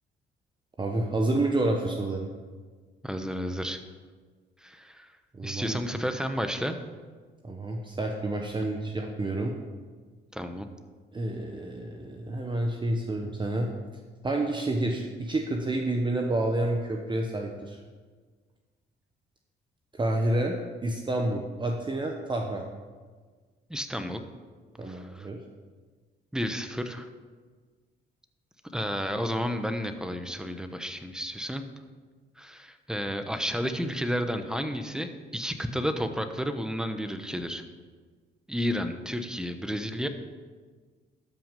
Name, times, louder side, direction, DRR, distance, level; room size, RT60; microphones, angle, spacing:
voice 1, 0.8-2.3 5.3-5.8 7.4-9.6 11.1-13.7 14.2-17.8 19.9-22.7 24.8-25.4, right 1 dB, 25° right, 1 dB, 1.0 m, -29 dB
voice 2, 3.0-3.8 4.6-5.1 5.4-6.8 10.3-10.7 23.7-24.2 24.9-25.3 26.3-27.1 28.7-31.6 32.4-37.6 38.5-40.1, equal, 5° right, 7 dB, 0.9 m, -31 dB
13.0 x 5.9 x 5.3 m, 1.5 s
cardioid pair, 90°, 20 cm